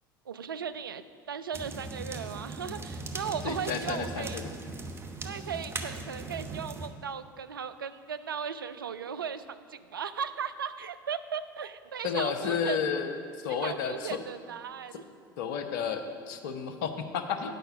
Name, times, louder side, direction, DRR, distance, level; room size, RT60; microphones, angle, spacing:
voice 1, 0.3-4.4 5.2-12.8 13.5-15.0, right 7 dB, 85° right, 12 dB, 0.4 m, -37 dB
sound 1, 1.5-6.9, right 3 dB, 20° right, 0.9 m, -39 dB
voice 2, 3.4-4.4 12.0-14.2 15.4-17.5, left 6 dB, 65° left, 7 dB, 0.8 m, -32 dB
9.0 x 5.7 x 6.8 m, 2.3 s
figure-of-eight pair, 75°, 11 cm